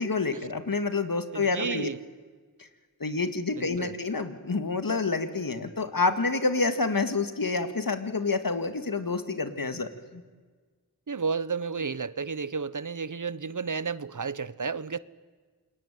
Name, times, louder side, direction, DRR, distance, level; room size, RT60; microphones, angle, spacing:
voice 1, 0.0-1.9 3.0-10.2, left 3 dB, 65° left, 9 dB, 2.3 m, -28 dB
voice 2, 1.3-2.0 3.6-3.9 11.1-15.0, right 5 dB, 55° right, 17 dB, 1.0 m, -32 dB
28.0 x 21.0 x 9.3 m, 1.5 s
wide cardioid pair, 40°, 36 cm